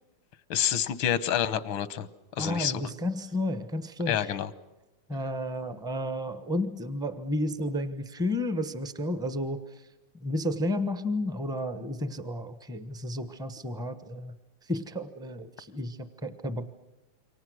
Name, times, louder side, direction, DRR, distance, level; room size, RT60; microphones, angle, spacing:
voice 1, 0.5-2.1 2.4-2.8 4.1-4.5, left 10 dB, 90° left, 15 dB, 1.8 m, -28 dB
voice 2, 2.4-4.3 5.1-9.9 10.2-14.3 14.6-16.7, left 1 dB, 5° right, 11 dB, 0.7 m, -32 dB
28.0 x 24.5 x 6.4 m, 1.0 s
omnidirectional pair, 2.1 m